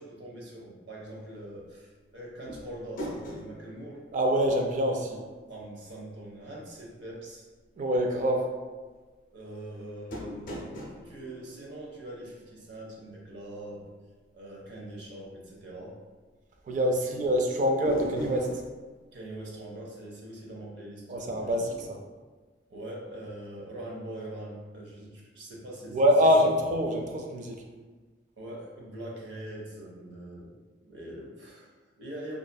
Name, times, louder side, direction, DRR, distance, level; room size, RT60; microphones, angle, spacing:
voice 1, 0.0-4.0 5.5-7.5 9.3-13.8 14.3-16.0 19.1-21.7 22.7-26.0 28.4-30.5 30.8-32.4, right 1 dB, 80° right, -3 dB, 0.6 m, -43 dB
sound 1, 2.5-5.1 5.4-5.5 10.1-12.6 17.8-18.7, equal, 50° left, 0.4 m, -39 dB
voice 2, 4.1-5.2 7.8-8.5 16.7-18.5 21.1-22.0 25.9-27.6, equal, 45° right, 2 dB, 0.3 m, -25 dB
2.5 x 2.4 x 2.2 m, 1.3 s
head